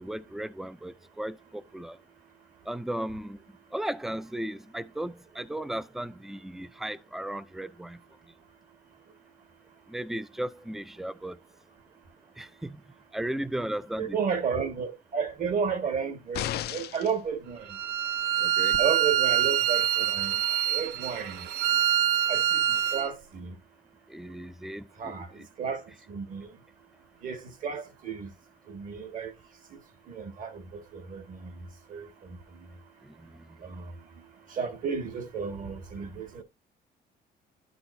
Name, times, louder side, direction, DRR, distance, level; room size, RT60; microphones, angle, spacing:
voice 1, 0.0-2.0 2.7-3.4 3.7-8.0 9.9-11.4 12.4-12.8 13.1-14.2 18.4-18.8 24.1-25.5 33.1-33.3, right 1 dB, ahead, 0.4 m, -36 dB
voice 2, 14.0-17.7 18.8-20.3 20.7-21.5 22.3-23.5 25.0-25.3 25.6-25.8 26.1-26.5 27.2-28.3 28.7-29.3 30.1-32.4 33.6-33.9 34.5-36.4, right 6 dB, 55° right, 1.9 m, -33 dB
sound 1, 16.3-17.2 18.7-18.8, left 13 dB, 80° left, 0.5 m, -33 dB
Bowed string instrument, 17.7-23.1, right 11 dB, 90° right, 0.8 m, -25 dB
12.0 x 6.1 x 2.7 m
cardioid pair, 155°, 17 cm